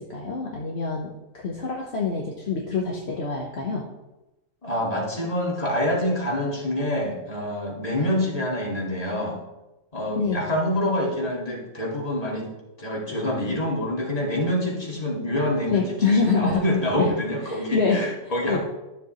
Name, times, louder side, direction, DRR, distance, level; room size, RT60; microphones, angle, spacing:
voice 1, 0.0-3.8 10.1-10.4 15.7-16.6 17.0-17.1 17.5-18.0 18.5-18.6, left 5 dB, 55° left, -1 dB, 1.3 m, -25 dB
voice 2, 4.6-9.4 9.9-12.5 12.8-18.6, left 1 dB, 30° left, -4 dB, 2.3 m, -26 dB
12.5 x 7.3 x 3.1 m, 0.99 s
omnidirectional pair, 1.4 m